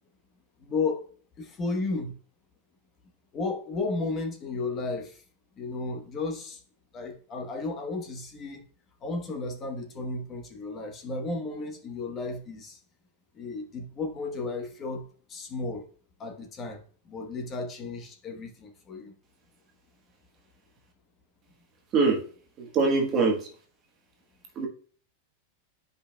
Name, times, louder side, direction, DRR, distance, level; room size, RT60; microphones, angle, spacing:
voice 1, 0.6-1.1 1.4-2.2 3.3-5.2 5.6-6.6 6.9-8.6 9.0-12.8 13.3-15.9 16.2-19.1, left 3 dB, 20° left, 1.1 m, -33 dB
voice 2, 22.6-23.4 24.6-24.7, right 4 dB, 25° right, 1.3 m, -23 dB
11.5 x 5.3 x 2.3 m
supercardioid pair, 170°, 0 cm